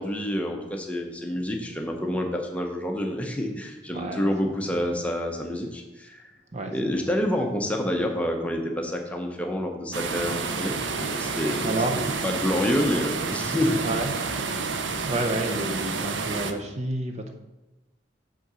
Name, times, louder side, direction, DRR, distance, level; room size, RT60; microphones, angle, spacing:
voice 1, 0.0-6.3 6.7-11.8 12.2-13.8, left 1 dB, 5° left, 2 dB, 0.8 m, -28 dB
voice 2, 3.9-4.8 6.5-7.1 11.6-12.1 13.8-14.1 15.0-17.4, right 2 dB, 35° right, 4 dB, 0.7 m, -30 dB
sound 1, 9.9-16.5, right 4 dB, 80° right, 0.6 m, -29 dB
8.2 x 3.8 x 6.3 m, 1.0 s
head